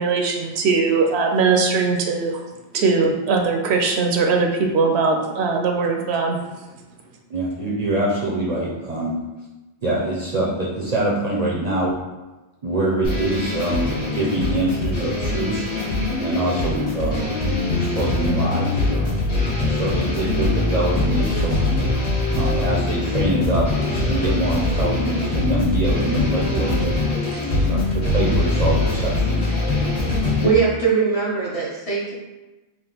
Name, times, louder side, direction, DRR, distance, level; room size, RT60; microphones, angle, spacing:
voice 1, 0.0-2.4 2.7-6.4, right 4 dB, 75° right, 3 dB, 0.8 m, -20 dB
voice 2, 7.3-9.2 9.8-12.0 12.6-15.6 16.2-17.3 17.7-19.2 19.6-21.6 22.3-27.0 27.7-29.4, right 1 dB, 45° right, -5 dB, 0.5 m, -24 dB
sound 1, 13.0-30.5, left 2 dB, 75° left, 1.6 m, -22 dB
voice 3, 27.3-27.7 30.4-32.1, right 5 dB, 35° left, -5 dB, 0.7 m, -21 dB
3.7 x 2.4 x 3.8 m, 1.1 s
omnidirectional pair, 1.1 m